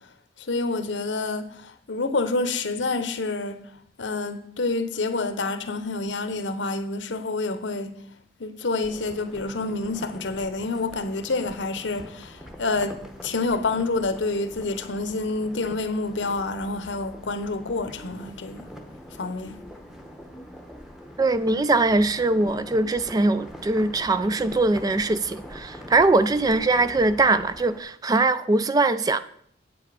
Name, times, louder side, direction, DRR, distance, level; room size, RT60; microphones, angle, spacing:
voice 1, 0.5-1.5 1.9-3.6 4.0-7.9 8.4-12.3 12.6-18.7 19.2-19.6, left 3 dB, 80° left, 0.9 m, -28 dB
sound 1, 8.8-27.8, equal, 5° right, 1.0 m, -43 dB
voice 2, 21.2-29.2, right 2 dB, 20° right, 0.3 m, -21 dB
8.4 x 7.9 x 4.9 m
head